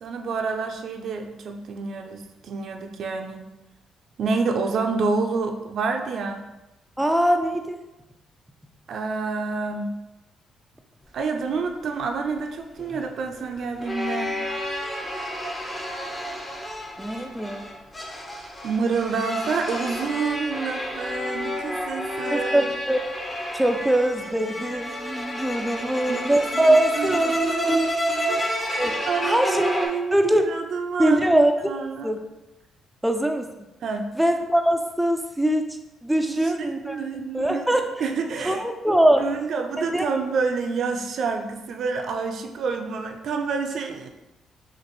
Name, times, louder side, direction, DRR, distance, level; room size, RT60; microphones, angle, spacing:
voice 1, 0.0-3.4 4.2-6.4 8.9-10.0 11.1-14.3 18.6-22.7 25.8-26.2 26.5-28.5 29.1-31.3 31.6-32.1 33.8-34.1 36.3-38.6 39.2-44.1, right 4 dB, 65° right, 4 dB, 0.5 m, -28 dB
voice 2, 7.0-7.8 17.0-17.7 22.3-23.0 23.5-27.9 28.8-29.6 30.1-30.5 31.0-31.5 32.0-32.2 33.0-33.5 34.2-35.8 36.0-37.0 37.3-37.9 38.4-39.2 39.9-40.1, right 1 dB, 5° right, 4 dB, 0.4 m, -22 dB
sound 1, 12.1-29.9, equal, 25° left, 0.9 m, -30 dB
5.9 x 2.5 x 3.1 m, 0.99 s
cardioid pair, 90°, 0 cm